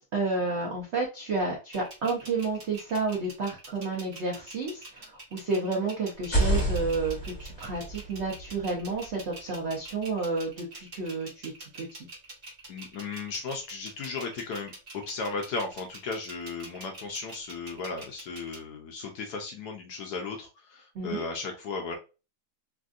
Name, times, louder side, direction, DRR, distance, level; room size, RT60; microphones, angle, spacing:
voice 1, 0.1-12.1 20.9-21.2, right 3 dB, 85° right, -2 dB, 0.6 m, -31 dB
sound 1, 1.7-18.6, right 2 dB, 40° right, 0.8 m, -46 dB
sound 2, 6.2-10.0, right 1 dB, 30° left, 1.4 m, -31 dB
voice 2, 12.7-22.0, left 4 dB, 70° left, 2 dB, 1.0 m, -35 dB
3.4 x 2.5 x 2.4 m, 0.31 s
omnidirectional pair, 2.1 m